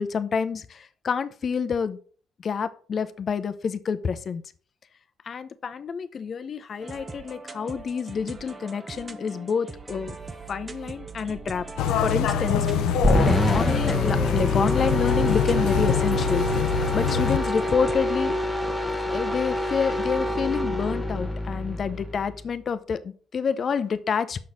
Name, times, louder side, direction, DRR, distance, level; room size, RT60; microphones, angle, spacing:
voice 1, 0.0-2.0 2.4-4.4 5.2-10.2 10.5-11.7 12.0-12.7 13.2-16.5 16.9-18.4 19.1-24.4, left 6 dB, 50° left, 12 dB, 0.6 m, -28 dB
sound 1, 6.8-18.0, right 4 dB, 25° right, 0.8 m, -40 dB
sound 2, 11.8-17.4 17.7-17.8, left 7 dB, 90° left, 0.5 m, -25 dB
sound 3, 13.0-22.4, left 1 dB, ahead, 1.1 m, -26 dB
6.3 x 6.1 x 4.1 m, 0.43 s
cardioid pair, 90°, 0 cm